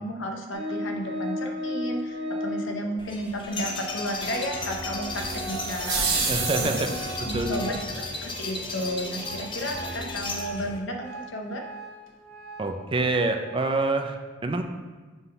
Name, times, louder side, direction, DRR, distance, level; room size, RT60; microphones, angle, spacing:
voice 1, 0.0-6.2 6.6-6.7 7.2-11.7, equal, 65° left, 3 dB, 0.8 m, -33 dB
Organ, 0.5-2.8 3.5-3.6 3.8-8.2 8.6-8.7 9.2-13.6, left 1 dB, 75° right, 1.3 m, -36 dB
sound 1, 3.0-10.8, left 2 dB, 25° left, 0.7 m, -34 dB
sound 2, 5.1-7.3, right 5 dB, 55° right, 1.2 m, -29 dB
voice 2, 6.2-7.8 12.6-14.6, right 2 dB, 25° right, 5 dB, 0.5 m, -27 dB
6.0 x 3.8 x 5.4 m, 1.3 s
head